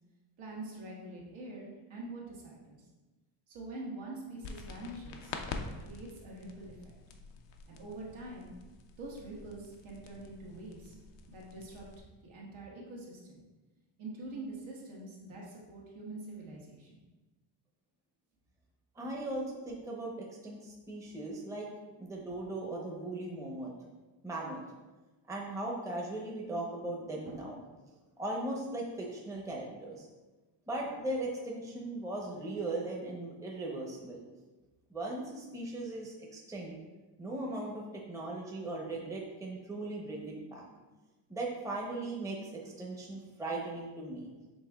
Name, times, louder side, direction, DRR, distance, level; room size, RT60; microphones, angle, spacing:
voice 1, 0.4-2.8 3.5-5.4 5.8-7.0 7.7-8.5 9.0-11.0 11.3-11.9 12.2-13.4 14.0-17.0, right 2 dB, 70° right, -3 dB, 1.4 m, -45 dB
sound 1, 4.4-12.0, left 4 dB, 60° left, 0.6 m, -46 dB
voice 2, 19.0-21.7 22.0-23.7 24.2-24.6 25.3-27.6 28.2-30.1 30.7-34.2 34.9-36.8 37.2-40.8 41.3-44.3, right 2 dB, 5° right, -3 dB, 0.8 m, -38 dB
6.0 x 3.5 x 2.3 m, 1.2 s
cardioid pair, 105°, 49 cm